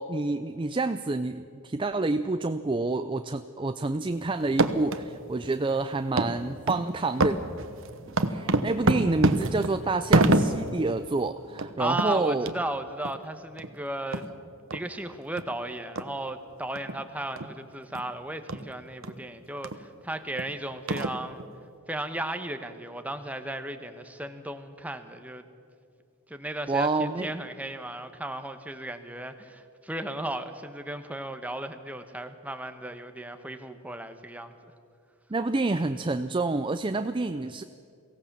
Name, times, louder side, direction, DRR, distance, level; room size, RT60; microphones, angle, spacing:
voice 1, 0.0-7.4 8.3-12.5 26.7-27.3 35.3-37.6, right 3 dB, 20° right, 10 dB, 0.4 m, -28 dB
sound 1, 4.4-5.0 5.4-5.5 6.2-6.3 6.7-6.8 7.2-10.8 11.2-11.3 11.5-11.7 12.0-12.1 12.5-12.6 13.0-13.1 13.6-13.7 14.1-14.3 14.7-14.8 15.4-15.5 16.0-16.1 16.8-17.0 17.4-17.5 17.9-18.0 18.5-18.6 19.0-19.1 19.6-19.8 20.4-20.5 20.9-21.4, right 2 dB, 60° right, 1.1 m, -26 dB
voice 2, 11.8-14.3 14.7-21.4 21.9-25.4 26.3-34.5, right 1 dB, 5° right, 7 dB, 1.1 m, -35 dB
23.0 x 17.0 x 7.4 m, 2.4 s
head